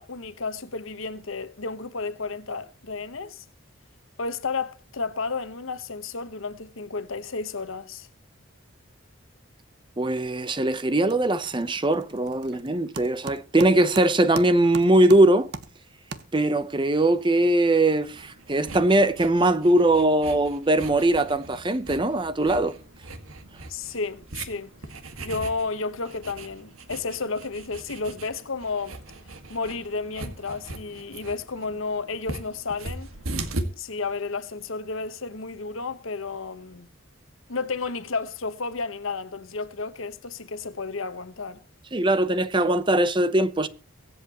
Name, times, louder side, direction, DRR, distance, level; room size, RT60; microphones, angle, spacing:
voice 1, 0.0-3.4 4.2-8.1 23.7-24.7 25.2-29.0 29.5-33.1 33.8-36.9 37.5-41.6, left 4 dB, 75° left, 1.2 m, -32 dB
voice 2, 10.0-15.5 16.3-22.7 41.9-43.7, right 1 dB, 25° right, 0.7 m, -21 dB
sound 1, 10.2-10.6 10.9-16.7, right 3 dB, 50° right, 1.2 m, -40 dB
sound 2, 18.0-33.6, right 2 dB, 85° right, 1.9 m, -39 dB
23.5 x 8.1 x 3.0 m
head